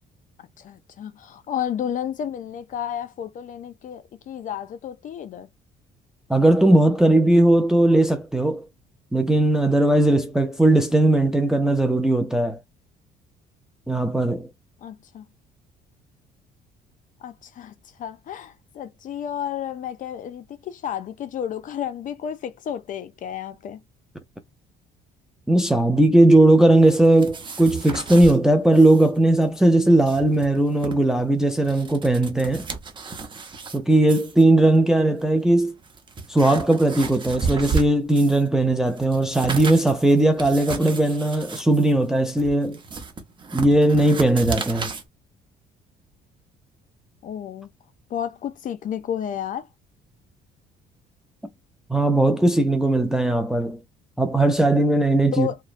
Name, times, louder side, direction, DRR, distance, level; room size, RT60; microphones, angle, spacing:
voice 1, 0.4-5.5 14.8-15.3 17.2-17.7 18.0-23.8 47.2-47.7 48.1-49.7 55.3-55.6, left 9 dB, 50° left, 0.5 m, -32 dB
voice 2, 6.3-8.7 9.1-12.6 13.9-14.5 25.5-32.7 33.7-35.8 36.3-42.8 43.5-44.9 51.9-53.8 54.2-55.5, right 1 dB, 5° right, 0.4 m, -18 dB
sound 1, 26.8-28.4 28.7-29.1 29.3-29.4 29.9-30.9 31.5-33.8 34.1-34.4 35.2-35.3 35.8-38.5 38.8-45.0, right 4 dB, 30° right, 0.8 m, -33 dB
2.9 x 2.1 x 2.5 m
cardioid pair, 110°, 17 cm